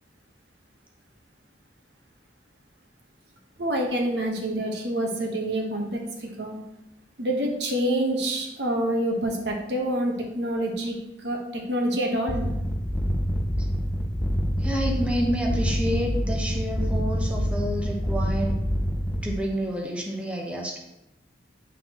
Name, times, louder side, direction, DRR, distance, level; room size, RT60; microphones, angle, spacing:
voice 1, 3.6-6.6 7.2-11.0 11.2-12.5, right 1 dB, 70° right, 1 dB, 1.2 m, -27 dB
sound 1, 12.3-19.4, equal, 10° left, 0.4 m, -26 dB
voice 2, 14.6-18.6 19.2-20.8, equal, 5° right, -1 dB, 0.8 m, -29 dB
9.4 x 3.9 x 3.0 m, 0.88 s
head